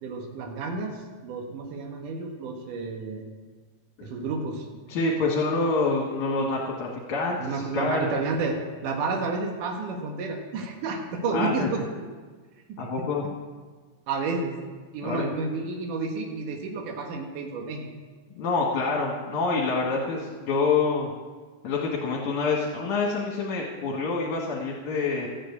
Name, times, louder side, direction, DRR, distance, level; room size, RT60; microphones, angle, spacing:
voice 1, 0.0-3.2 4.0-4.7 7.4-11.8 12.7-13.1 14.1-14.5 14.9-17.9, right 3 dB, 85° right, 2 dB, 3.1 m, -31 dB
voice 2, 4.9-8.2 11.3-11.7 12.8-13.2 15.0-15.3 18.3-21.1 21.6-25.3, left 3 dB, 70° left, -2 dB, 3.3 m, -27 dB
14.0 x 9.3 x 8.6 m, 1.4 s
omnidirectional pair, 3.6 m